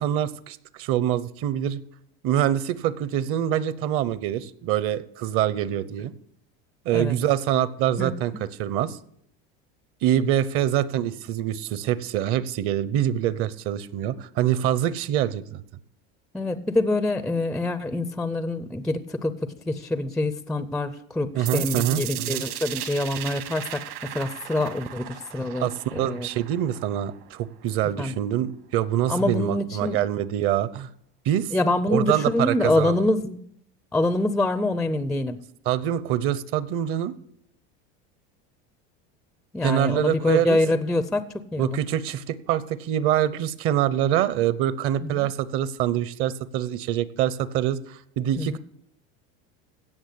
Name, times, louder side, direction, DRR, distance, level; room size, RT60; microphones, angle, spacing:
voice 1, 0.0-1.8 2.2-6.1 6.8-9.0 10.0-15.6 21.3-22.4 25.6-30.9 31.2-31.5 31.9-33.0 35.7-37.1 39.6-40.6 41.6-48.6, right 11 dB, 45° right, 17 dB, 0.8 m, -25 dB
voice 2, 16.3-26.3 28.0-28.1 29.1-30.0 31.5-33.4 33.9-35.4 39.5-41.2 41.5-41.8 45.0-45.3 48.4-48.6, left 2 dB, ahead, 13 dB, 0.4 m, -25 dB
sound 1, 21.5-27.4, right 14 dB, 70° right, 2.1 m, -35 dB
16.5 x 6.4 x 8.2 m, 0.71 s
supercardioid pair, 145°, 31 cm